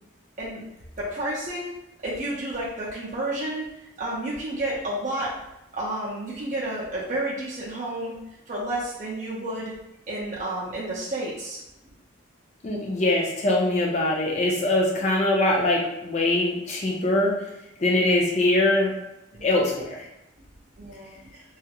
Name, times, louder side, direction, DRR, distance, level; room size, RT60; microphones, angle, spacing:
voice 1, 1.0-1.8 2.0-5.3 5.7-8.1 8.5-9.7 10.1-11.6 19.3-19.4 20.8-21.4, right 1 dB, 40° right, -6 dB, 0.5 m, -31 dB
voice 2, 12.6-17.3 17.8-18.9 19.4-20.1, left 2 dB, 35° left, -2 dB, 0.4 m, -22 dB
2.3 x 2.0 x 2.8 m, 0.89 s
head